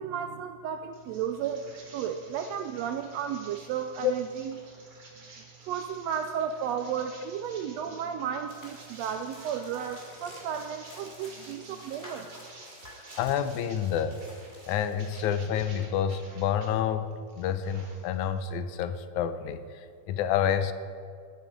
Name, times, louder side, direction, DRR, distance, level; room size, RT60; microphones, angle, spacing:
voice 1, 0.0-4.6 5.6-12.3, right 8 dB, 80° right, 7 dB, 1.5 m, -33 dB
sound 1, 0.9-16.7 17.1-18.4, right 3 dB, 65° right, 3.5 m, -52 dB
sound 2, 8.5-15.3, equal, 5° left, 2.8 m, -50 dB
voice 2, 13.2-14.2 14.7-20.7, left 8 dB, 90° left, 11 dB, 2.1 m, -29 dB
20.5 x 6.8 x 5.2 m, 2.2 s
omnidirectional pair, 3.4 m